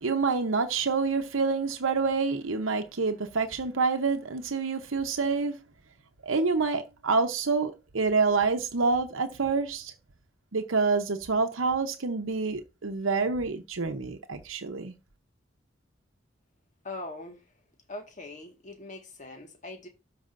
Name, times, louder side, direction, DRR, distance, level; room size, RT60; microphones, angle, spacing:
voice 1, 0.0-5.6 6.2-9.9 10.5-14.9, right 4 dB, 85° right, 0.9 m, -27 dB
voice 2, 16.8-17.4 17.9-19.9, left 2 dB, 40° left, 1.7 m, -41 dB
12.5 x 5.0 x 2.6 m
head